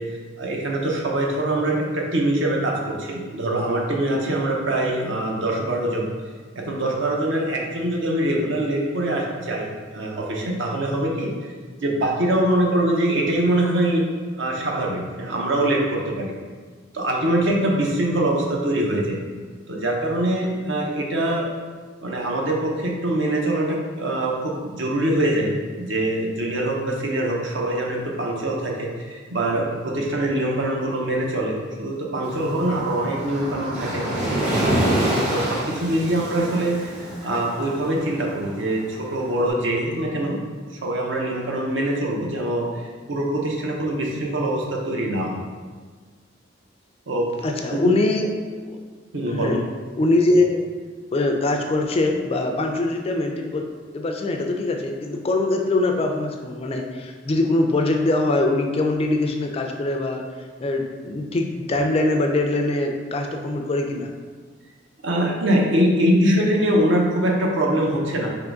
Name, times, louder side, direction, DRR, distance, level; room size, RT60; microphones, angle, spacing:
voice 1, 0.0-6.1 6.5-11.3 11.8-14.1 14.4-16.4 16.9-19.2 19.7-21.5 22.0-34.0 35.3-40.4 40.8-45.4 47.1-47.3 47.8-47.9 49.1-49.5 65.0-68.3, right 1 dB, 65° right, -1 dB, 0.7 m, -23 dB
Waves surf, 32.2-39.3, right 1 dB, 35° right, 1.0 m, -27 dB
voice 2, 47.4-48.3 48.6-48.8 49.3-49.7 50.0-50.6 51.1-53.6 53.9-60.2 60.6-64.1, left 2 dB, 30° left, 3 dB, 0.3 m, -22 dB
3.8 x 3.0 x 3.5 m, 1.5 s
head